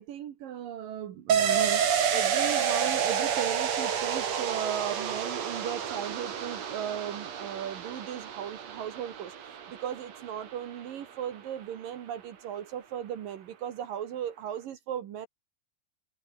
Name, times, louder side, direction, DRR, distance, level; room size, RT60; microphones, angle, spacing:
voice 1, 0.0-15.3, right 10 dB, 70° right, 3.3 m, -37 dB
sound 1, 1.3-10.7 11.0-11.1, right 8 dB, 50° right, 3.2 m, -29 dB
omnidirectional pair, 4.1 m